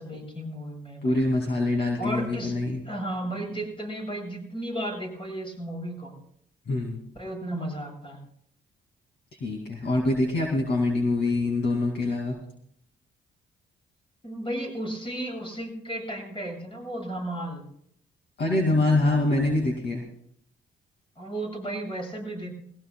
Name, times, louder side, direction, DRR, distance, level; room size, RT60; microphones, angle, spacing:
voice 1, 0.0-1.3 2.0-2.6 2.9-6.1 7.1-8.2 14.2-17.6 21.2-22.6, right 1 dB, 25° left, 0 dB, 7.8 m, -34 dB
voice 2, 1.0-2.8 6.7-7.0 9.4-12.4 18.4-20.0, left 2 dB, 60° left, 0 dB, 2.4 m, -25 dB
21.5 x 17.0 x 2.3 m, 0.66 s
cardioid pair, 90°, 20 cm